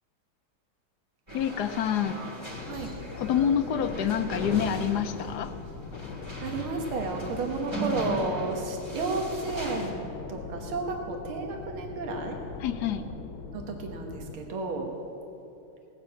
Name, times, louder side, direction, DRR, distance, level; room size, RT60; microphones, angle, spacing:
voice 1, 1.3-2.2 3.1-5.5 12.6-13.0, left 9 dB, 75° left, 9 dB, 0.9 m, -27 dB
sound 1, 1.3-9.9, right 1 dB, 15° right, 1.8 m, -38 dB
sound 2, 2.5-14.4, left 4 dB, 90° left, 1.8 m, -41 dB
voice 2, 6.4-10.0 10.3-12.4 13.5-14.9, right 3 dB, 85° right, 2 dB, 2.1 m, -32 dB
18.0 x 7.6 x 8.4 m, 2.7 s
omnidirectional pair, 2.2 m